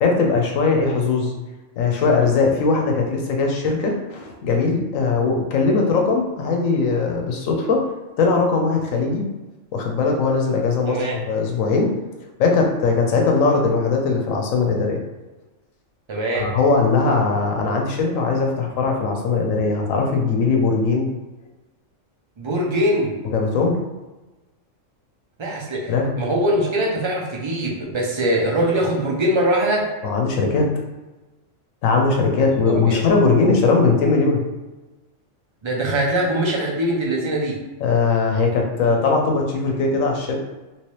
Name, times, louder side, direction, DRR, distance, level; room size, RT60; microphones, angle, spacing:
voice 1, 0.0-1.3 1.8-7.8 8.2-9.3 9.7-11.9 12.4-15.0 16.3-21.1 23.2-23.8 25.9-26.1 30.0-30.7 31.8-34.4 37.8-40.4, left 4 dB, 80° left, 1 dB, 1.1 m, -20 dB
voice 2, 10.9-11.2 16.1-16.5 22.4-23.1 25.4-29.9 32.6-33.0 35.6-37.6, right 1 dB, 35° right, -2 dB, 0.4 m, -22 dB
3.1 x 2.9 x 3.1 m, 1.1 s
omnidirectional pair, 1.4 m